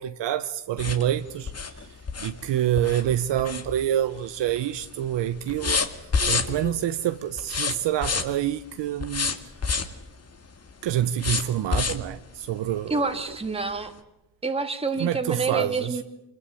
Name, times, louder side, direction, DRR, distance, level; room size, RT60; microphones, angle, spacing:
voice 1, 0.0-1.9 2.2-5.8 6.2-9.3 10.8-13.0 15.0-16.0, right 11 dB, 70° right, 1.0 m, -27 dB
sound 1, 0.8-4.2 4.5-4.9 5.1-6.8 7.4-8.5 9.0-10.0 11.2-12.1 12.7-12.8 13.2-13.3, left 5 dB, 35° left, 2.1 m, -28 dB
voice 2, 12.9-13.9 14.4-16.0, right 3 dB, 15° right, 2.1 m, -27 dB
25.0 x 20.5 x 8.5 m
cardioid pair, 95°, 45 cm